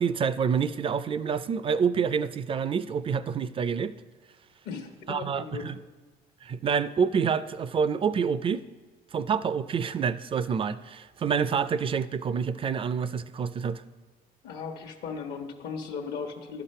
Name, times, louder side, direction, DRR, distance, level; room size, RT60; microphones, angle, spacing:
voice 1, 0.0-3.9 5.1-5.8 6.4-8.6 9.1-13.8, right 6 dB, 30° right, 15 dB, 0.4 m, -27 dB
voice 2, 4.6-5.7 14.4-16.6, left 5 dB, 75° left, 3 dB, 1.1 m, -37 dB
11.5 x 5.9 x 5.5 m, 1.3 s
cardioid pair, 110°, 17 cm